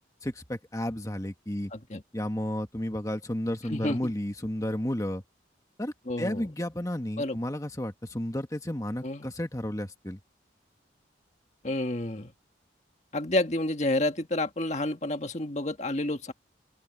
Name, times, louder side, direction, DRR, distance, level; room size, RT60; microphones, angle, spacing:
voice 1, 0.2-1.7 2.1-5.2 5.8-10.2, left 1 dB, 20° left, 1.5 m, -32 dB
voice 2, 1.7-2.0 3.7-4.1 6.1-6.4 7.2-7.4 9.0-9.3 11.6-12.3 13.1-16.3, left 1 dB, 40° left, 1.8 m, -29 dB
open air
head